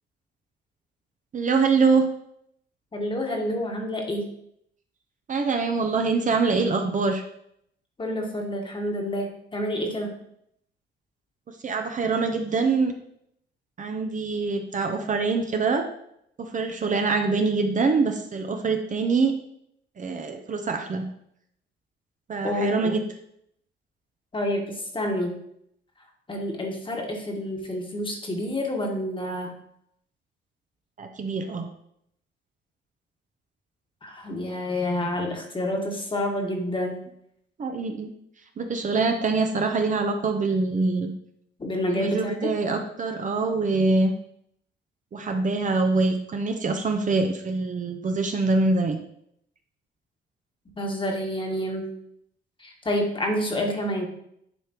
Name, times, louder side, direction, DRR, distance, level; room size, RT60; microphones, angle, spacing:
voice 1, 1.3-2.1 5.3-7.2 11.5-12.9 13.8-15.8 16.4-19.3 20.0-21.1 22.3-23.0 31.0-31.7 37.6-38.1 38.6-41.1 41.9-44.1 45.1-49.0, right 4 dB, 40° right, 4 dB, 0.7 m, -24 dB
voice 2, 2.9-4.3 8.0-10.2 22.4-22.9 24.3-25.4 26.3-29.6 34.0-37.1 41.6-42.5 50.8-51.9 52.6-54.1, left 1 dB, 25° left, 1 dB, 1.4 m, -28 dB
9.9 x 3.4 x 2.9 m, 0.73 s
cardioid pair, 90°, 20 cm